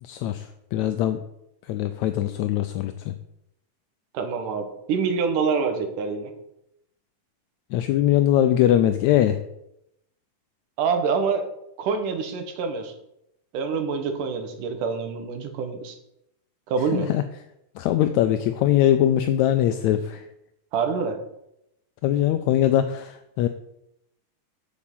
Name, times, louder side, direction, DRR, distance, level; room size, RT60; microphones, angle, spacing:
voice 1, 0.0-1.2 1.6-3.1 7.7-9.4 16.9-17.2 17.8-20.3 22.0-23.5, left 12 dB, 80° left, 9 dB, 1.8 m, -22 dB
voice 2, 4.1-6.3 10.8-11.5 11.8-12.9 13.5-16.0 16.7-17.1 20.7-21.2, right 5 dB, 85° right, 6 dB, 2.9 m, -26 dB
8.5 x 7.2 x 7.4 m, 0.82 s
omnidirectional pair, 3.6 m